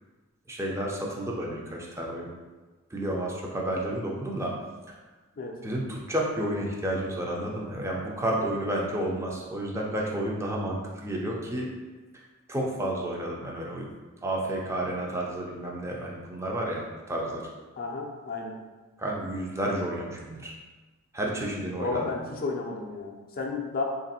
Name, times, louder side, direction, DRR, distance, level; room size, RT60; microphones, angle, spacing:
voice 1, 0.5-2.3 2.9-4.5 4.9-5.0 5.6-11.7 12.1-12.2 12.5-13.9 14.2-17.5 19.0-20.6 21.1-22.1, right 1 dB, 15° right, -2 dB, 0.5 m, -31 dB
voice 2, 17.8-18.6 21.8-23.8, left 3 dB, 40° left, 0 dB, 0.5 m, -32 dB
3.3 x 2.5 x 4.1 m, 1.3 s
head